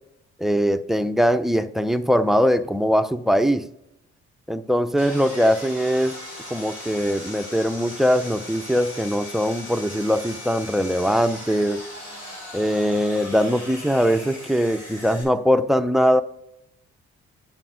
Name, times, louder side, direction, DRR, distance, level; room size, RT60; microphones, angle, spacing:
voice 1, 0.4-3.7 4.5-6.2 6.5-11.8 12.5-16.2, equal, ahead, 10 dB, 0.3 m, -21 dB
Sawing, 5.0-15.2, left 1 dB, 65° left, 2.4 m, -38 dB
10.5 x 4.3 x 2.4 m, 0.86 s
hypercardioid pair, 45°, 33 cm